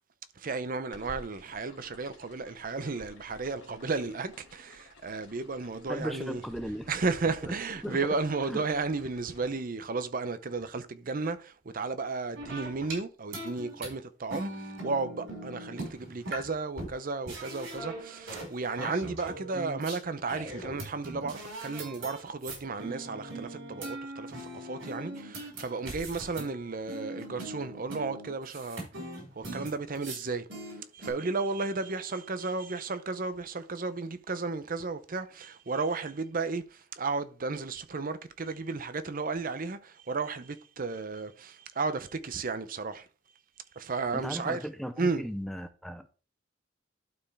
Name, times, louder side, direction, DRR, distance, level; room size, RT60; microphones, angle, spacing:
voice 1, 0.4-6.4 6.9-28.9 29.3-30.5 30.9-43.1 43.8-44.6 45.0-45.2, right 3 dB, 50° right, 0.7 m, -33 dB
sound 1, 0.9-9.5, left 1 dB, 70° left, 2.5 m, -53 dB
voice 2, 5.9-6.9 7.4-7.6 7.8-8.1 8.5-8.6 44.1-46.1, equal, ahead, 0.5 m, -37 dB
sound 2, 12.3-13.0 13.3-13.9 14.3-16.5 16.8-16.9 17.3-18.5 18.8-20.0 20.3-26.6 26.9-30.2 30.5-31.1, right 1 dB, 80° right, 4.6 m, -40 dB
12.0 x 4.7 x 3.4 m
head